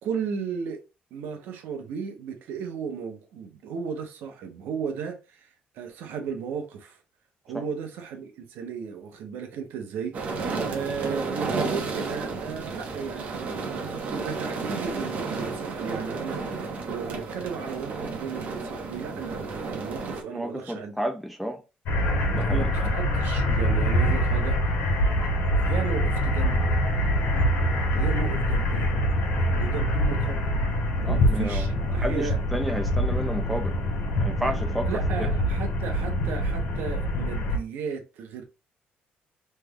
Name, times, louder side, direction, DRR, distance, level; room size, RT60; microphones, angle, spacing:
voice 1, 0.0-0.8 1.1-5.5 5.7-7.0 7.4-10.1 10.7-20.9 22.3-24.6 25.5-26.7 27.9-28.8 29.5-30.5 31.0-32.4 34.9-38.4, right 6 dB, 85° right, 0.8 m, -35 dB
sound 1, 10.1-20.2, right 4 dB, 45° right, 0.8 m, -32 dB
voice 2, 20.3-21.6 22.3-22.9 31.0-33.7 34.2-34.9, equal, ahead, 0.4 m, -31 dB
sound 2, 21.9-37.6, equal, 90° left, 1.2 m, -24 dB
3.2 x 2.2 x 3.4 m
cardioid pair, 150°, 3 cm